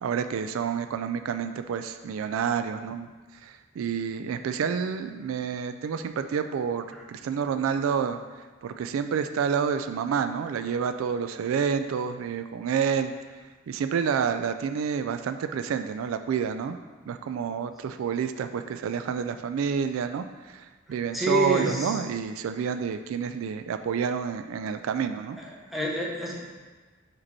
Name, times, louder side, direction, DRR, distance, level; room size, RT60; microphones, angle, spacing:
voice 1, 0.0-3.1 3.4-8.2 8.6-13.1 13.7-16.8 17.1-25.4, right 7 dB, 90° right, 9 dB, 0.3 m, -29 dB
voice 2, 21.1-21.9 25.7-26.4, right 1 dB, ahead, -4 dB, 0.9 m, -27 dB
5.1 x 4.5 x 4.2 m, 1.3 s
head